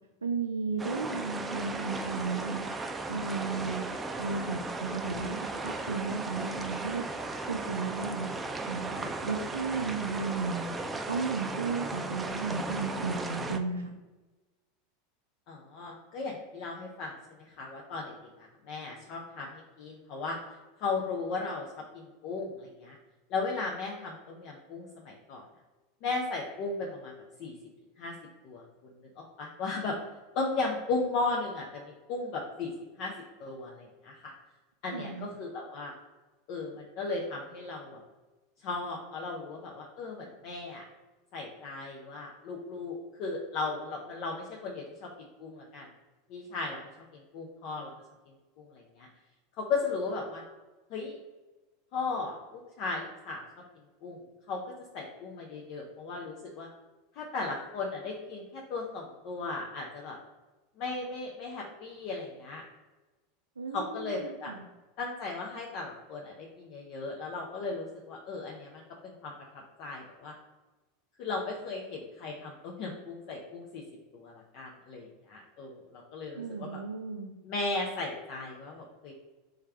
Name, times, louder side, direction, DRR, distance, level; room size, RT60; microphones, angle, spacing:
voice 1, 0.2-2.7 3.1-3.9 4.2-7.0 7.5-8.3 8.7-10.7 11.1-13.9 34.9-35.3 63.6-64.6 76.4-77.3, right 4 dB, 80° right, 2 dB, 0.3 m, -34 dB
sound 1, 0.8-13.6, right 3 dB, 15° right, 0.4 m, -36 dB
voice 2, 15.5-20.4 20.8-23.0 23.3-25.4 26.0-27.1 27.4-27.5 28.0-28.1 28.4-30.0 30.3-32.7 33.0-33.1 33.4-34.3 34.8-35.9 36.5-38.0 38.6-40.8 41.3-45.1 45.4-45.9 46.3-46.8 47.1-47.9 48.6-49.1 49.6-50.4 50.9-51.2 51.9-53.4 54.0-54.2 54.5-54.6 54.9-56.7 57.1-60.2 60.8-62.6 63.7-64.5 65.0-70.3 71.2-73.8 74.1-76.8 77.4-79.1, left 3 dB, 50° left, -1 dB, 0.6 m, -36 dB
3.5 x 3.3 x 3.3 m, 1.2 s
figure-of-eight pair, 85°, 0 cm